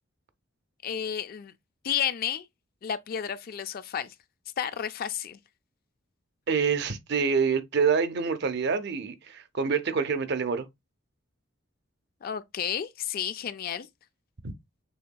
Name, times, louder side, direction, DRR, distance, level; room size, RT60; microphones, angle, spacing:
voice 1, 0.8-1.5 1.8-2.5 2.8-4.1 4.6-5.4 12.2-13.9, left 9 dB, 50° left, 0.4 m, -31 dB
voice 2, 6.5-10.7 14.4-14.5, right 5 dB, 55° right, 0.6 m, -26 dB
6.4 x 2.7 x 2.2 m
head